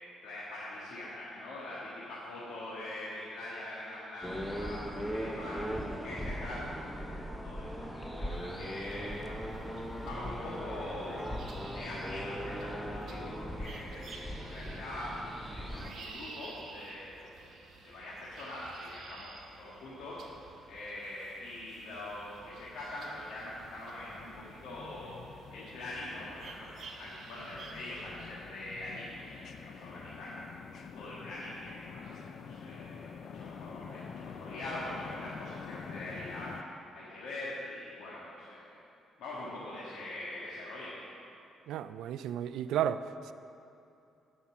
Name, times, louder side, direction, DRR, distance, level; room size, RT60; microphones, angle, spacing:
voice 1, 0.2-7.1 7.4-15.2 15.5-17.5 17.8-36.6 36.9-38.8 39.2-41.0, left 1 dB, 80° left, -8 dB, 1.6 m, -43 dB
sound 1, 4.2-15.9, equal, ahead, 0.8 m, -39 dB
sound 2, 8.3-28.0, right 3 dB, 65° right, 1.2 m, -53 dB
sound 3, 22.0-36.6, left 6 dB, 60° left, 0.5 m, -48 dB
voice 2, 41.7-43.3, right 10 dB, 85° right, 13 dB, 0.3 m, -33 dB
11.5 x 5.5 x 6.0 m, 2.7 s
cardioid pair, 90°, 0 cm